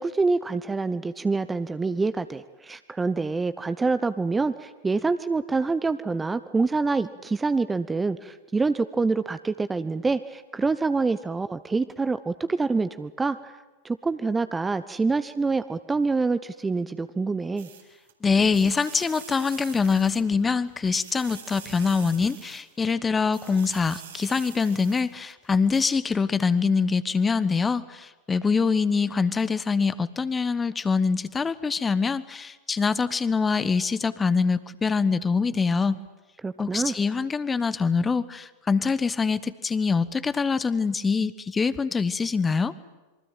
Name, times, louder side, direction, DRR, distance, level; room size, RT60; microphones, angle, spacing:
voice 1, 0.0-13.5 13.8-17.7 36.4-37.0, right 3 dB, 10° right, 13 dB, 1.0 m, -26 dB
sound 1, 17.6-18.1 18.5-20.5 20.9-22.9 23.3-25.3 25.7-25.8, right 8 dB, 65° right, 4.3 m, -45 dB
voice 2, 18.2-36.0 36.6-42.7, left 5 dB, 15° left, 16 dB, 1.2 m, -24 dB
26.5 x 24.0 x 9.1 m, 1.1 s
figure-of-eight pair, 90°, 0 cm